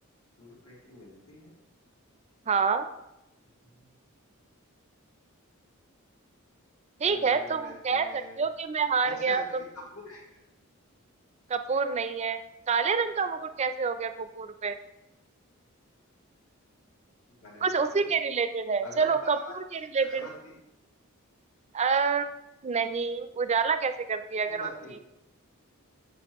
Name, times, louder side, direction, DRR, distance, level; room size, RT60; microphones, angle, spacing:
voice 1, 0.4-1.5 3.8-3.9 7.0-8.4 9.0-9.6 9.9-10.4 17.4-18.0 18.8-19.5 20.0-20.5 24.4-25.0, left 2 dB, 90° left, -5 dB, 2.8 m, -46 dB
voice 2, 2.5-2.9 7.0-9.6 11.5-12.4 12.7-14.8 17.6-20.3 21.7-22.3 22.6-24.7, right 5 dB, 30° right, 10 dB, 0.4 m, -27 dB
7.7 x 6.9 x 3.0 m, 0.89 s
head